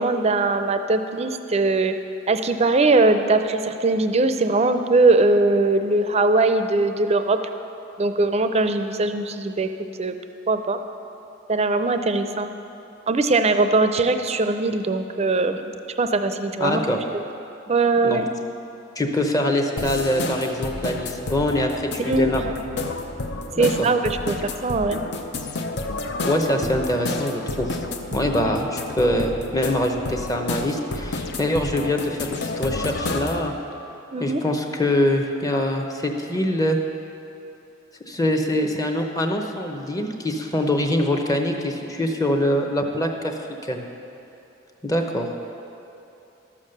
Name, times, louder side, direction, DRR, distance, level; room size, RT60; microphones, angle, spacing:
voice 1, 0.0-2.0 2.3-7.4 8.0-9.7 10.0-10.2 10.5-10.8 11.5-12.5 13.1-16.8 17.1-17.2 17.7-18.3 22.0-22.6 23.6-25.0 34.1-34.4, right 3 dB, 35° right, 8 dB, 0.5 m, -21 dB
voice 2, 16.6-17.0 18.0-18.2 19.0-22.4 23.6-23.9 26.2-27.8 28.1-33.5 34.2-36.8 38.1-43.4 43.7-43.8 44.8-45.3, left 1 dB, 20° left, 3 dB, 0.8 m, -24 dB
sound 1, 19.8-33.5, left 2 dB, 60° left, 0.7 m, -30 dB
12.5 x 7.3 x 6.6 m, 2.9 s
head